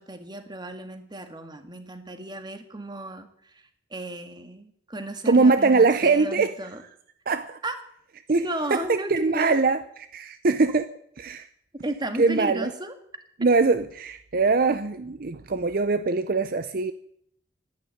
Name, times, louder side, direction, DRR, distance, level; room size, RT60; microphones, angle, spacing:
voice 1, 0.0-3.3 3.9-6.8 7.6-7.7 8.3-9.6 11.8-12.9, right 1 dB, 25° right, 7 dB, 1.7 m, -34 dB
voice 2, 5.3-6.5 7.3-7.6 8.3-8.4 8.7-9.8 10.1-10.9 11.2-11.5 12.2-12.7 13.4-16.9, right 4 dB, 55° right, 11 dB, 0.7 m, -22 dB
12.0 x 11.5 x 9.4 m, 0.69 s
head